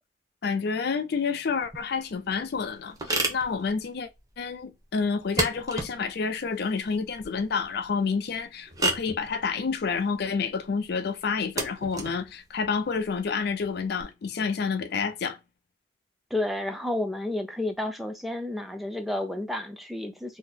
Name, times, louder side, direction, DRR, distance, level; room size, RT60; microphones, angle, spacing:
voice 1, 0.4-4.1 4.4-15.4, left 5 dB, 60° left, 0.5 m, -29 dB
sound 1, 1.6-14.0, right 2 dB, 20° right, 0.8 m, -35 dB
voice 2, 16.3-20.4, left 1 dB, ahead, 0.4 m, -31 dB
2.8 x 2.2 x 3.9 m
head